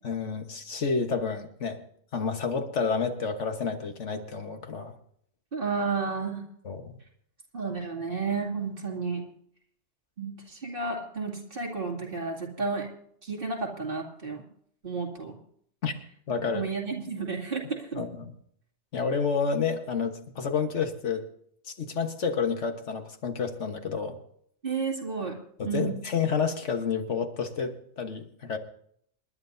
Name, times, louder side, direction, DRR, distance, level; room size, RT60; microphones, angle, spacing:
voice 1, 0.0-1.8 2.1-4.9 6.6-7.0 15.8-15.9 16.3-16.6 17.9-18.3 18.9-21.2 21.7-24.2 25.6-28.6, left 5 dB, 80° left, 6 dB, 1.7 m, -29 dB
voice 2, 5.5-6.4 7.5-9.2 10.2-12.9 13.2-14.4 14.8-15.3 16.5-18.0 24.6-25.3 25.6-26.0, right 4 dB, 50° right, 0 dB, 2.7 m, -32 dB
28.0 x 11.0 x 2.7 m, 0.65 s
omnidirectional pair, 1.2 m